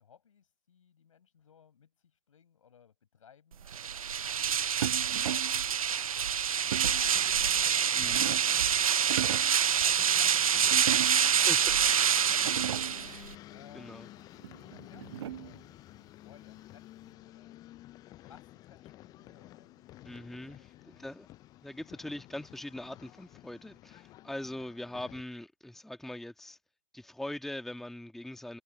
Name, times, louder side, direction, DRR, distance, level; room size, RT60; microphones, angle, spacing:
voice 1, 0.0-3.7 4.2-5.8 6.3-9.1 9.7-13.0 13.5-14.1 14.4-17.6 18.2-20.0 20.6-21.0, left 8 dB, 60° left, 6.1 m, -60 dB
sound 1, 3.7-13.3, right 8 dB, 70° right, 0.5 m, -27 dB
sound 2, 4.8-5.6 6.7-7.1 7.8-8.6 9.0-9.6 10.7-11.4 12.0-12.1 12.3-13.1 14.4-15.6, right 12 dB, 45° right, 1.0 m, -37 dB
sound 3, 6.7-25.2, left 15 dB, 20° left, 0.8 m, -53 dB
voice 2, 7.9-8.3 11.4-11.8 13.7-14.1 20.0-21.3 21.6-26.6 26.9-28.6, left 1 dB, ahead, 1.8 m, -42 dB
figure-of-eight pair, 120°, 19 cm